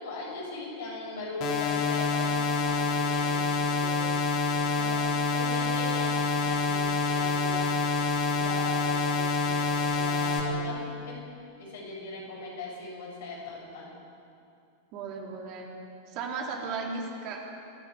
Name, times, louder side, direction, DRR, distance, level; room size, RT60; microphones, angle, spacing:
voice 1, 0.0-4.1 4.5-7.9 8.3-11.3 11.6-13.9, left 2 dB, 60° left, -2 dB, 7.2 m, -39 dB
sound 1, 1.4-10.4, left 4 dB, 40° left, 3.6 m, -27 dB
voice 2, 4.7-5.2 14.9-15.7 16.1-17.5, right 4 dB, 40° right, 0 dB, 3.5 m, -36 dB
25.5 x 10.5 x 9.9 m, 2.5 s
figure-of-eight pair, 90°, 0 cm